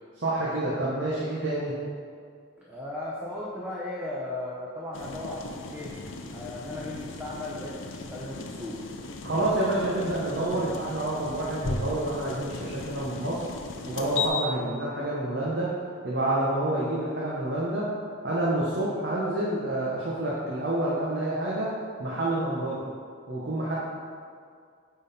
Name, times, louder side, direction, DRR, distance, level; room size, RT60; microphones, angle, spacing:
voice 1, 0.2-1.7 9.2-13.4 13.8-15.7 16.0-17.9 18.2-21.7 22.0-22.8 23.3-23.8, right 1 dB, 55° right, -7 dB, 1.0 m, -28 dB
voice 2, 2.6-5.9 6.3-8.8, left 1 dB, 5° right, -6 dB, 0.7 m, -36 dB
sound 1, 4.9-14.3, left 3 dB, 70° left, 0.6 m, -37 dB
8.9 x 3.9 x 4.2 m, 2.2 s
head